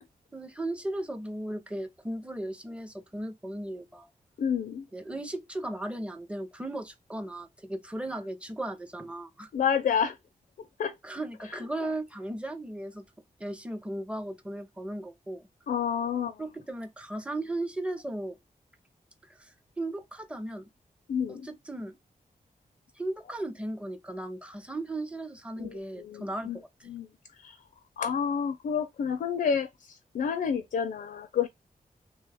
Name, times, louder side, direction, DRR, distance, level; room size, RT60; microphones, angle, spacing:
voice 1, 0.3-4.1 4.9-9.5 11.0-13.0 13.4-15.5 16.4-18.4 19.2-20.7 21.3-21.9 22.9-26.5 26.8-26.9, right 1 dB, 10° right, 0.5 m, -36 dB
voice 2, 4.4-4.9 9.5-10.2 10.8-11.0 11.5-11.6 15.7-16.4 21.1-21.5 25.6-26.6 26.9-27.6 28.0-31.5, left 7 dB, 70° left, 0.4 m, -29 dB
3.1 x 2.3 x 3.3 m
wide cardioid pair, 140°, 15 cm